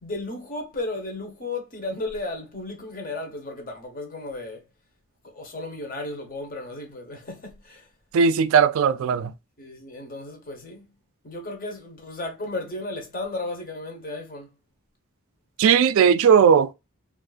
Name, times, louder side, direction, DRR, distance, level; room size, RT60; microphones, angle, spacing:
voice 1, 0.0-4.6 5.2-7.9 9.6-10.9 11.2-14.5, left 2 dB, 40° left, 1.0 m, -34 dB
voice 2, 8.1-9.3 15.6-16.7, right 7 dB, 70° right, 0.3 m, -17 dB
3.7 x 2.5 x 2.3 m
head